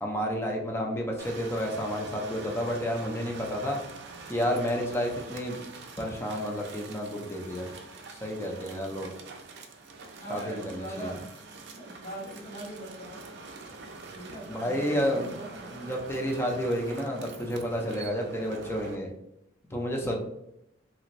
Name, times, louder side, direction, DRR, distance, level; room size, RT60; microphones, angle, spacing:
voice 1, 0.0-3.8 4.3-5.6 6.0-7.7 8.1-9.1 10.3-11.1 14.5-15.3 15.7-19.1 19.7-20.2, equal, 15° left, 0 dB, 0.5 m, -30 dB
sound 1, 1.2-19.0, right 3 dB, 60° right, 0.5 m, -45 dB
voice 2, 10.2-11.2 11.7-13.2 14.1-15.7, right 1 dB, 60° left, -13 dB, 1.5 m, -41 dB
2.9 x 2.8 x 2.5 m, 0.80 s
head